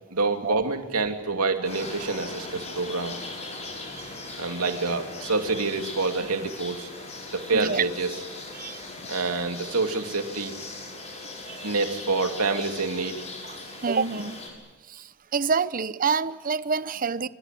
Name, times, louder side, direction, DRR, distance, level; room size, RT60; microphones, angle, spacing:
voice 1, 0.1-3.2 4.4-6.9 7.3-8.1 9.1-10.6 11.6-13.2, right 3 dB, 75° right, 2.9 m, -27 dB
sound 1, 1.6-14.5, left 2 dB, 30° left, 6.6 m, -39 dB
voice 2, 7.5-7.8 8.5-8.8 11.5-11.7 13.5-14.4 14.9-17.3, right 5 dB, 40° right, 0.8 m, -27 dB
26.0 x 24.5 x 7.8 m
head